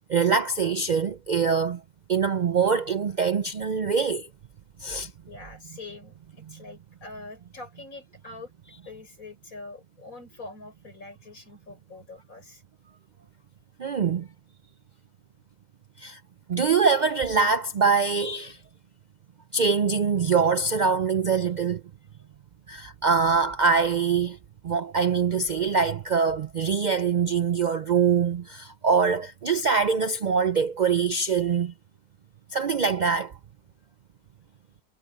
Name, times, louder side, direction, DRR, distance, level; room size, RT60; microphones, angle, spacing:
voice 1, 0.1-1.8 2.1-4.3 4.8-5.1 6.5-6.6 13.8-14.3 16.0-16.2 16.5-18.6 19.5-21.8 22.7-24.4 24.6-31.7 32.5-33.3, right 5 dB, 60° right, 0.4 m, -24 dB
voice 2, 5.3-8.5 8.8-12.6 14.6-14.8 22.1-22.2, left 3 dB, 85° left, 6.6 m, -44 dB
omnidirectional pair, 1.4 m